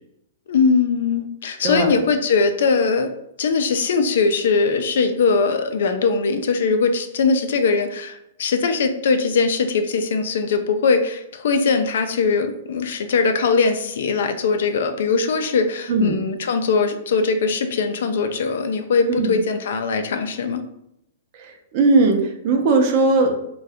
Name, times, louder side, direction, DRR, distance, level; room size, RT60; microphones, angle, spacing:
voice 1, 0.5-3.1 3.4-20.6, left 4 dB, 70° left, 7 dB, 0.4 m, -21 dB
voice 2, 1.6-2.0 15.9-16.2 19.1-19.4 21.3-23.3, right 3 dB, 40° right, 3 dB, 0.6 m, -19 dB
2.7 x 2.3 x 3.4 m, 0.80 s
hypercardioid pair, 155°, 0 cm